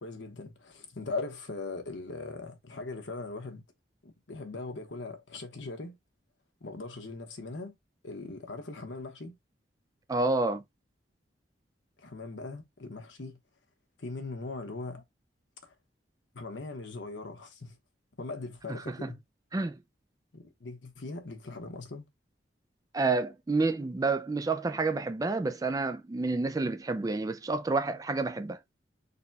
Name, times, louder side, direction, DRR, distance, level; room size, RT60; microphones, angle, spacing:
voice 1, 0.0-3.6 4.0-6.0 6.6-7.7 8.0-9.4 12.0-13.4 14.0-15.0 15.6-15.7 16.3-17.8 18.2-19.2 20.3-22.1, left 3 dB, 80° left, 1.1 m, -40 dB
voice 2, 10.1-10.6 18.9-19.1 19.5-19.8 22.9-28.6, right 3 dB, 20° right, 0.3 m, -29 dB
4.0 x 2.3 x 4.0 m
head